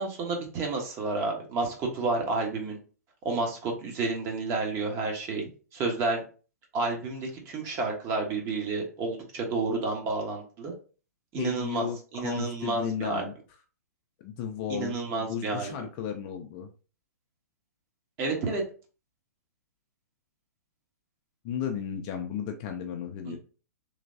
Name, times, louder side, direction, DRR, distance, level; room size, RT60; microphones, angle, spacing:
voice 1, 0.0-2.8 3.2-5.4 5.7-6.2 6.7-10.7 11.3-11.9 12.1-13.2 14.7-15.7 18.2-18.6 23.2-23.4, right 3 dB, 25° right, 1 dB, 1.0 m, -30 dB
voice 2, 11.4-13.3 14.2-16.7 18.3-18.6 21.4-23.4, left 8 dB, 30° left, 5 dB, 0.5 m, -34 dB
3.2 x 2.9 x 2.6 m, 0.36 s
figure-of-eight pair, 115°, 9 cm